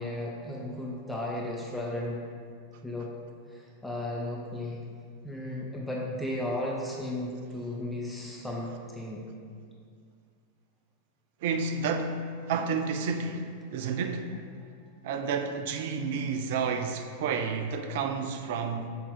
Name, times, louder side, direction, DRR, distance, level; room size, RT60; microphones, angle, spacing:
voice 1, 0.0-2.2 2.8-3.1 3.5-4.8 5.2-9.3, left 1 dB, ahead, 0.7 m, -35 dB
voice 2, 11.4-14.3 15.0-18.9, right 5 dB, 50° right, 0.4 m, -30 dB
6.7 x 3.7 x 4.0 m
figure-of-eight pair, 90°, 0 cm